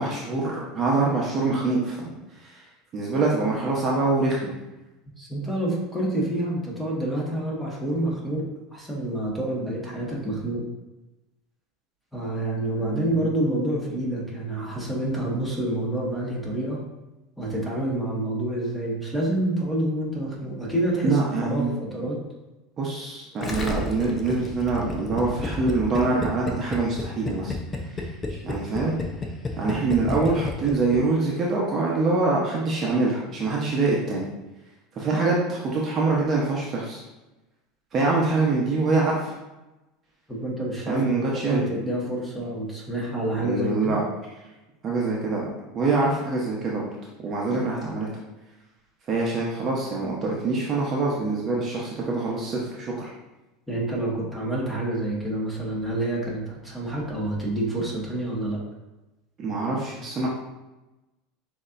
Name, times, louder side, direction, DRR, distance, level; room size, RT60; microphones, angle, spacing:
voice 1, 0.0-2.1 2.4-2.6 2.9-4.5 12.7-13.1 21.0-21.7 22.8-27.5 27.9-28.0 28.3-28.9 29.6-34.3 35.0-37.0 37.9-39.3 40.9-41.6 43.4-44.0 44.8-45.5 45.7-46.9 47.2-48.1 49.1-53.1 59.4-60.3, right 3 dB, 35° right, -4 dB, 1.0 m, -25 dB
voice 2, 5.2-8.4 8.7-10.6 12.1-16.8 17.4-21.2 21.5-22.2 40.3-44.0 53.7-58.6, right 1 dB, 5° left, -5 dB, 1.5 m, -28 dB
Gurgling, 23.4-31.0 31.2-31.3, left 2 dB, 25° left, 0.7 m, -31 dB
6.4 x 2.9 x 2.6 m, 1.0 s
supercardioid pair, 105°, 0 cm